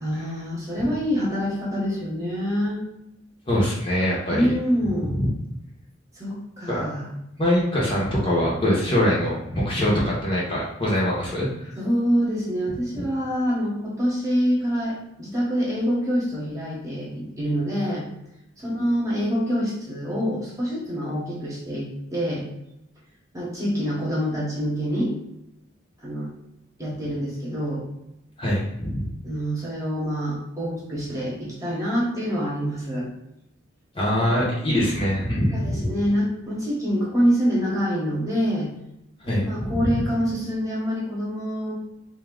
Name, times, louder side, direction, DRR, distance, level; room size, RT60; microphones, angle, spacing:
voice 1, 0.0-2.8 4.3-5.1 6.1-7.1 8.7-8.9 11.8-18.1 18.6-22.5 23.3-25.1 26.0-26.3 26.8-27.8 29.2-33.1 34.2-34.8 35.5-38.7 39.2-41.7, equal, 15° right, -6 dB, 1.1 m, -26 dB
voice 2, 3.5-4.5 5.0-5.3 6.7-6.9 7.4-11.7 12.9-13.1 28.4-29.1 33.9-35.9 39.2-40.0, equal, 25° left, -5 dB, 0.9 m, -23 dB
3.6 x 2.8 x 3.7 m, 0.84 s
head